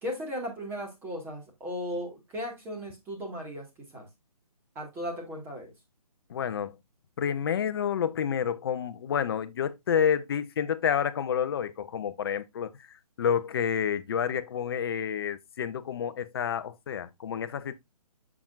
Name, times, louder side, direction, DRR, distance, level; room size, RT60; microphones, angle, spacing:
voice 1, 0.0-4.1 4.8-5.7, equal, 10° right, 1.9 m, -36 dB
voice 2, 6.3-6.8 7.2-12.7 13.2-17.7, left 8 dB, 40° left, 0.7 m, -29 dB
7.0 x 6.0 x 2.5 m
figure-of-eight pair, 150°, 19 cm